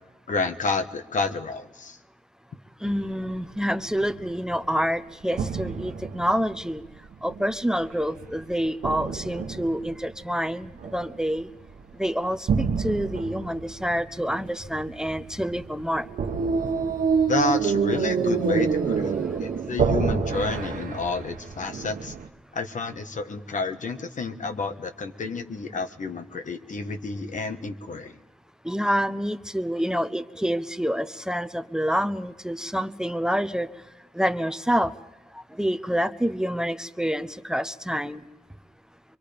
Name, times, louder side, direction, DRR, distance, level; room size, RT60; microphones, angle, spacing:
voice 1, 0.3-2.0 17.3-19.1 19.4-22.1 22.5-28.1, left 3 dB, 65° left, 7 dB, 1.4 m, -30 dB
voice 2, 2.8-11.5 11.9-16.1 19.0-19.6 28.6-38.3, equal, 5° right, 11 dB, 0.8 m, -28 dB
sound 1, 2.9-3.3 3.7-4.8 5.3-7.6 8.2-10.2 10.6-11.3 11.7-12.1 12.5-22.3, right 6 dB, 90° right, 1.0 m, -27 dB
24.5 x 23.5 x 5.2 m, 1.0 s
cardioid pair, 80°, 14 cm